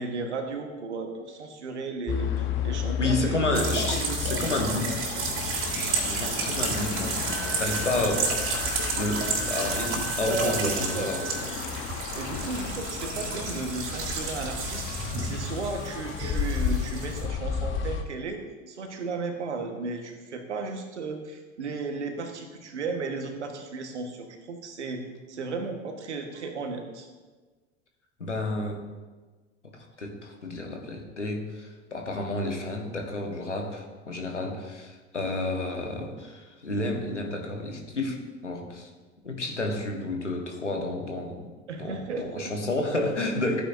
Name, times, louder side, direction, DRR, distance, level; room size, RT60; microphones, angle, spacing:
voice 1, 0.0-3.6 3.9-4.2 10.2-11.5 12.1-14.8 15.2-18.4 18.7-27.1 41.7-42.5, right 3 dB, 75° right, 5 dB, 1.5 m, -34 dB
sound 1, 2.1-18.0, left 7 dB, 35° left, 1.1 m, -33 dB
voice 2, 3.0-5.1 5.4-11.2 28.2-28.8 29.6-38.9 39.2-41.5 41.8-43.6, left 2 dB, 85° left, 2 dB, 1.5 m, -31 dB
sound 2, 3.5-17.2, right 4 dB, 35° right, 3.0 m, -32 dB
Wind instrument woodwind instrument, 7.2-11.4, equal, 5° left, 1.4 m, -40 dB
14.5 x 9.4 x 2.7 m, 1.3 s
figure-of-eight pair, 75°, 35 cm